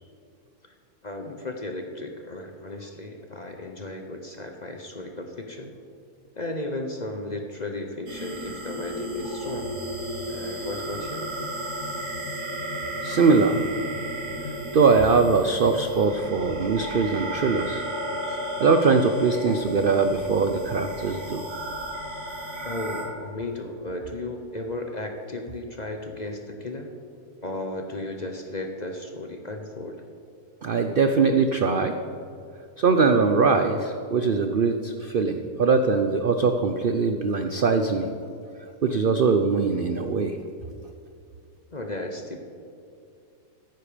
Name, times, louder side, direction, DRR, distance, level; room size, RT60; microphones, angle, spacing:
voice 1, 1.0-5.7 6.4-9.7 10.3-11.3 18.3-18.4 22.6-26.9 27.4-30.0 41.7-42.4, left 2 dB, 35° left, 4 dB, 0.8 m, -35 dB
sound 1, 8.1-23.0, equal, 90° right, 2.9 m, -33 dB
voice 2, 13.0-13.6 14.7-17.8 18.6-21.4 30.6-31.9 32.8-38.1 38.8-40.4, right 4 dB, 70° right, 7 dB, 0.5 m, -21 dB
14.0 x 10.5 x 5.0 m, 2.4 s
omnidirectional pair, 1.7 m